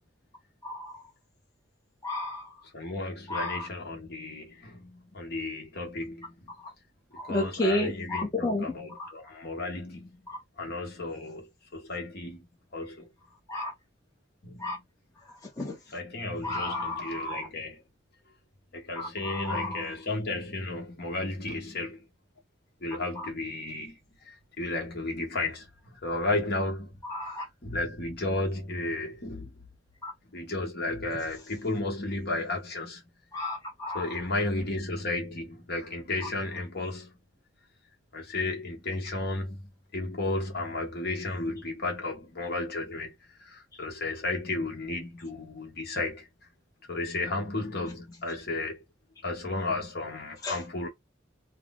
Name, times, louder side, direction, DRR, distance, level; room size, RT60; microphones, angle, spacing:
voice 1, 2.0-2.5 3.3-3.7 7.2-8.6 9.0-9.1 13.5-13.7 14.6-14.8 15.6-15.7 16.4-17.5 19.0-19.8 23.2-23.3 27.1-27.4 30.0-30.1 33.3-34.1 50.4-50.6, left 1 dB, 20° left, 0.8 m, -31 dB
voice 2, 2.7-6.5 7.2-10.2 10.6-12.5 12.7-13.1 14.4-14.8 15.9-17.8 18.7-22.0 22.8-24.0 24.2-27.0 27.3-29.5 30.3-33.0 33.9-37.1 38.1-39.6 39.9-43.1 43.4-46.3 46.9-48.8 49.2-50.9, left 2 dB, 50° left, 1.2 m, -33 dB
3.2 x 2.1 x 3.6 m
head